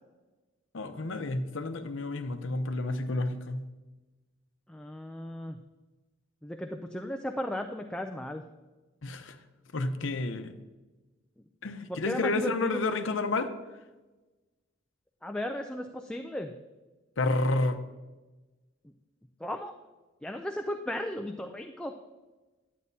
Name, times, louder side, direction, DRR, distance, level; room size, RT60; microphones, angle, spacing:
voice 1, 0.7-3.6 9.0-9.4 9.7-10.5 11.6-13.5 17.2-17.8, left 2 dB, 70° left, 8 dB, 0.7 m, -30 dB
voice 2, 4.7-5.6 6.4-8.4 11.4-11.5 11.9-12.8 15.2-16.5 18.8-18.9 19.4-19.7 20.2-21.9, left 1 dB, 5° left, 4 dB, 0.4 m, -35 dB
11.0 x 8.4 x 2.7 m, 1.2 s
head